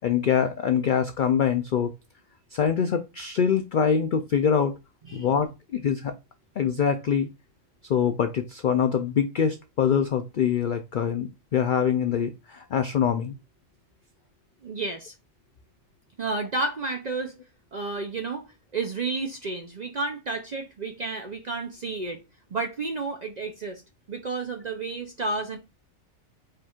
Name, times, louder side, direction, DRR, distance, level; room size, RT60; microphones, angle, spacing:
voice 1, 0.0-1.9 2.5-4.7 5.1-6.1 6.6-7.3 7.9-13.4, left 7 dB, 80° left, 0.4 m, -24 dB
voice 2, 14.6-15.1 16.2-17.3 17.7-22.2 22.5-23.8 24.1-25.6, right 3 dB, 55° right, 0.4 m, -31 dB
4.8 x 2.4 x 4.3 m
omnidirectional pair, 1.4 m